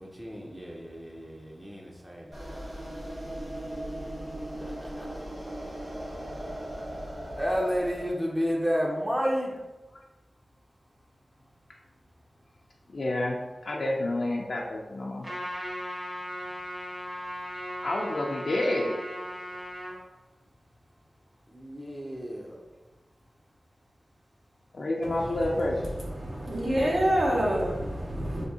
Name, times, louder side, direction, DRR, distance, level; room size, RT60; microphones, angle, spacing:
voice 1, 0.0-2.6 4.8-5.2 7.4-9.5 21.5-22.6, equal, 15° right, -2 dB, 0.5 m, -31 dB
sound 1, 2.3-8.1, right 1 dB, 80° right, 1.3 m, -38 dB
voice 2, 12.9-15.3 17.8-19.0 24.7-26.0, left 1 dB, 70° left, -2 dB, 0.4 m, -29 dB
Trumpet, 15.2-19.9, equal, 35° right, 1.4 m, -37 dB
voice 3, 26.2-28.5, right 1 dB, 60° right, -2 dB, 0.8 m, -27 dB
3.5 x 2.6 x 2.7 m, 1.2 s
cardioid pair, 50°, 0 cm